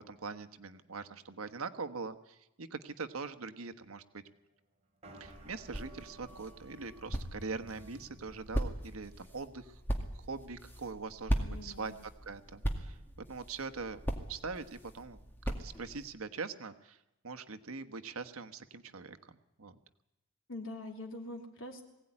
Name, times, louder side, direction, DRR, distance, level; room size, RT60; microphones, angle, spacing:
voice 1, 0.0-4.2 5.2-9.8 10.1-11.9 12.3-13.0 13.3-14.0 14.3-15.2 15.6-17.0 17.2-19.7, right 4 dB, 80° right, 9 dB, 1.3 m, -42 dB
sound 1, 5.0-9.1, right 1 dB, 30° right, 3.5 m, -54 dB
sound 2, 5.2-16.1, equal, 10° left, 2.1 m, -39 dB
voice 2, 11.5-12.0 20.5-21.8, left 2 dB, 65° left, 2 dB, 3.4 m, -44 dB
21.5 x 17.0 x 9.8 m, 0.89 s
head